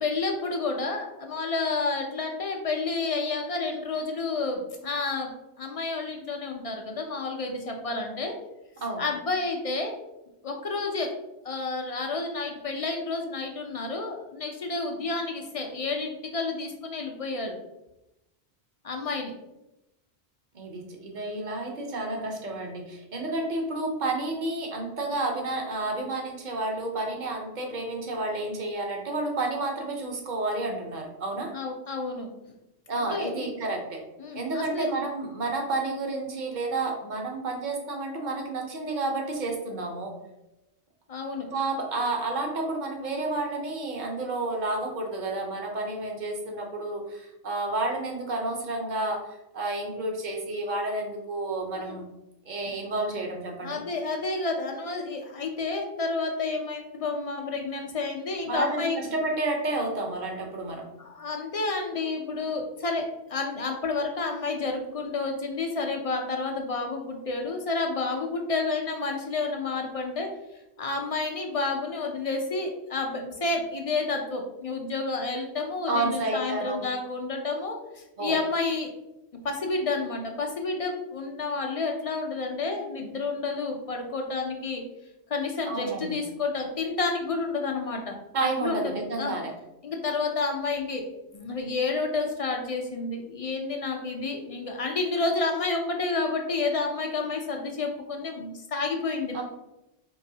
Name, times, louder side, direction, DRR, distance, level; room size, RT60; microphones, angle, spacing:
voice 1, 0.0-5.3 5.6-8.3 9.0-9.9 10.4-11.1 11.4-17.5 18.8-19.3 31.5-32.3 33.1-33.5 34.2-34.9 41.1-41.5 51.7-52.0 53.6-59.1 61.0-70.3 70.8-78.9 79.4-84.8 85.3-88.2 88.6-89.3 89.8-91.0 91.3-99.4, left 3 dB, 50° left, 2 dB, 0.4 m, -30 dB
voice 2, 20.5-31.5 32.9-34.1 34.3-40.1 41.5-52.1 52.5-53.8 58.4-60.9 75.9-76.8 78.2-78.3 85.7-86.2 88.3-89.5 99.3-99.4, right 2 dB, 50° right, 1 dB, 0.9 m, -30 dB
4.7 x 3.0 x 2.7 m, 0.93 s
omnidirectional pair, 1.1 m